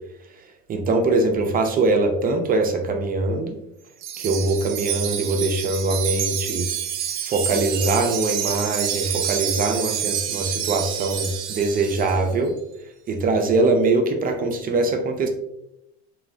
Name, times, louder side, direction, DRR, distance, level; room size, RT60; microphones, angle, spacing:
voice 1, 0.7-3.6 4.2-6.7 7.3-12.5 13.1-15.3, right 3 dB, 25° right, 5 dB, 0.4 m, -22 dB
Wind chime, 4.0-12.2, right 9 dB, 85° right, 0.5 m, -28 dB
3.0 x 2.0 x 2.5 m, 0.81 s
hypercardioid pair, 95°, 33 cm